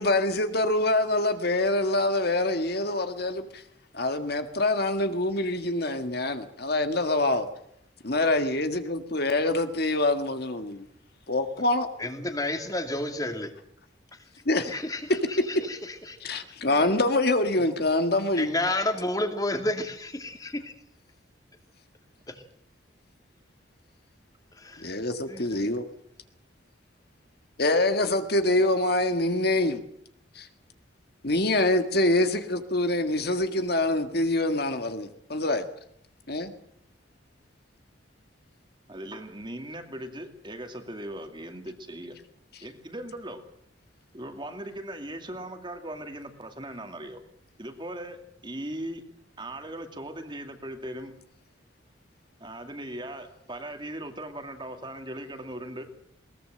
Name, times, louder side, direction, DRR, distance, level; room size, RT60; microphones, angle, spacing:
voice 1, 0.0-3.6 3.9-7.5 8.0-10.8 11.3-11.9 14.4-14.7 16.2-18.5 24.8-25.8 27.6-29.8 30.3-30.5 31.2-35.6 36.3-36.5, left 2 dB, 55° left, 1.8 m, -25 dB
voice 2, 12.0-13.5 14.1-14.2 14.6-16.4 18.3-20.7 22.3-22.4 24.5-24.9 25.3-25.5, left 1 dB, 20° left, 2.4 m, -31 dB
voice 3, 38.9-42.1 42.6-43.4 44.1-47.2 47.6-49.0 49.4-51.1 52.4-55.9, right 1 dB, 25° right, 2.4 m, -39 dB
21.5 x 19.5 x 7.7 m
head